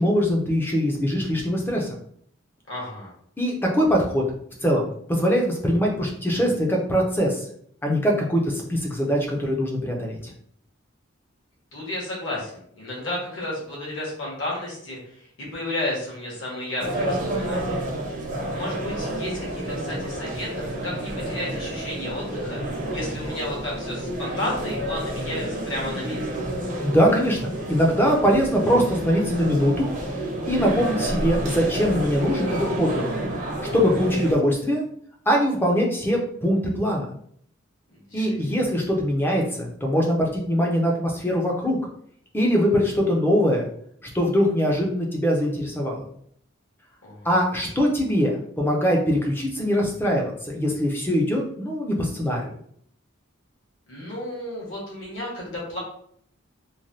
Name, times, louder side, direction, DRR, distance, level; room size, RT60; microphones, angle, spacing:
voice 1, 0.0-1.9 3.4-4.2 4.6-7.5 7.8-10.3 26.8-27.4 27.7-29.9 30.5-33.1 33.7-34.8 35.3-37.1 38.1-41.8 42.3-43.7 44.1-46.1 47.2-52.5, equal, 10° left, -1 dB, 0.4 m, -22 dB
voice 2, 2.7-3.1 11.7-17.9 18.5-22.6 22.9-26.3 37.9-38.6 47.0-47.4 53.9-55.8, left 1 dB, 65° left, -5 dB, 1.2 m, -33 dB
sound 1, 16.8-34.3, right 1 dB, 40° right, 0.6 m, -29 dB
3.1 x 2.2 x 2.6 m, 0.64 s
head